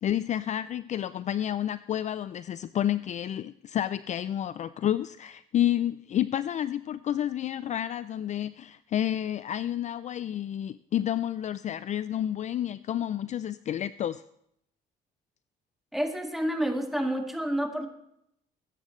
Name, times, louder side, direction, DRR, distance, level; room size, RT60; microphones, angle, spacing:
voice 1, 0.0-14.2, left 11 dB, 45° left, 15 dB, 0.4 m, -30 dB
voice 2, 15.9-17.9, equal, ahead, 3 dB, 2.1 m, -29 dB
21.0 x 10.5 x 3.2 m, 0.74 s
cardioid pair, 110°, 17 cm